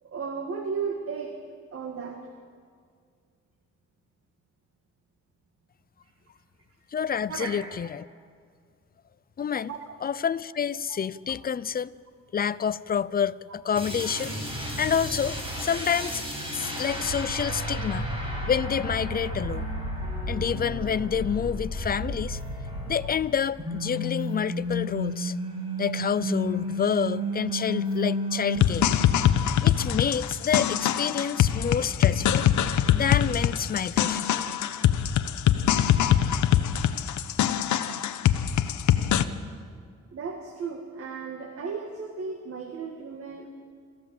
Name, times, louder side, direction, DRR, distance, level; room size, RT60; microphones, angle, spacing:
voice 1, 0.0-1.4 1.7-2.2 7.3-7.6 9.7-9.9 10.9-11.0 29.1-29.3 40.1-43.5, right 5 dB, 50° right, 2.0 m, -35 dB
voice 2, 6.9-8.1 9.4-9.7 10.0-11.9 12.3-14.4 14.8-16.2 16.5-18.1 18.5-19.7 20.3-22.4 22.7-25.4 25.8-28.9 29.6-32.5 32.9-34.3, left 7 dB, 30° left, 0.6 m, -28 dB
sound 1, 13.7-23.3 23.6-28.6, equal, 15° right, 6.9 m, -32 dB
sound 2, 28.6-39.2, left 10 dB, 70° left, 1.0 m, -23 dB
27.0 x 14.5 x 7.7 m
cardioid pair, 90°, 30 cm